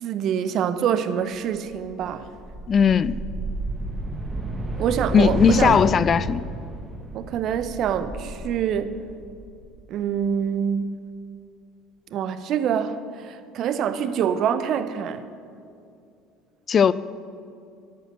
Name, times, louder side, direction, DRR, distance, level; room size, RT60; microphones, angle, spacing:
voice 1, 0.0-2.3 4.8-5.7 7.1-9.0 9.9-11.0 12.1-15.2, right 8 dB, 55° right, 0.7 m, -25 dB
sound 1, 1.5-10.0, right 2 dB, 25° right, 1.3 m, -31 dB
voice 2, 2.7-3.2 5.1-6.4 16.7-16.9, left 7 dB, 40° left, 0.3 m, -18 dB
9.2 x 7.8 x 6.5 m
hypercardioid pair, 70°, 0 cm